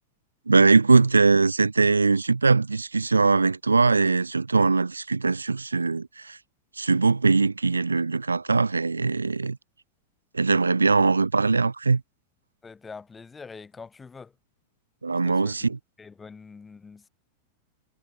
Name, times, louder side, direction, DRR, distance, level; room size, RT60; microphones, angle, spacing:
voice 1, 0.5-6.4 6.8-9.6 10.3-12.0 15.0-15.8, right 4 dB, 80° right, 1.1 m, -21 dB
voice 2, 12.6-14.3 15.2-17.1, left 5 dB, 15° left, 4.0 m, -45 dB
figure-of-eight pair, 90°, 0 cm